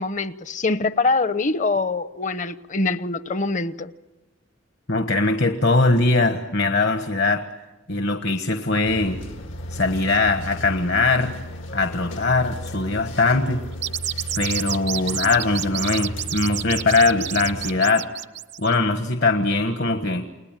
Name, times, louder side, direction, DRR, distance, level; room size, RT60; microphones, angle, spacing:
voice 1, 0.0-3.9, left 3 dB, 40° left, 0.9 m, -24 dB
voice 2, 4.9-7.4 7.9-9.2 9.7-11.3 11.7-13.6 14.4-18.1 18.6-20.2, left 3 dB, 60° left, 1.4 m, -21 dB
sound 1, 8.9-17.8, left 1 dB, 80° left, 1.7 m, -35 dB
sound 2, 13.7-18.7, right 12 dB, 60° right, 0.8 m, -29 dB
29.5 x 20.0 x 9.2 m
head